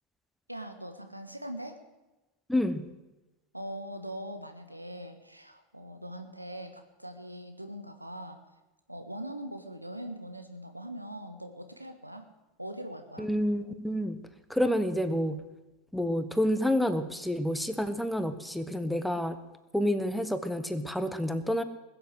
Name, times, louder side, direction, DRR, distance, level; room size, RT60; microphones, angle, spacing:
voice 1, 0.5-1.8 3.5-8.4 8.9-12.3 12.6-13.3, equal, 90° right, 7 dB, 1.5 m, -41 dB
voice 2, 2.5-2.9 13.2-15.5 15.9-19.4 19.7-21.6, equal, ahead, 10 dB, 1.2 m, -29 dB
20.5 x 7.9 x 8.0 m, 1.1 s
figure-of-eight pair, 85°, 0 cm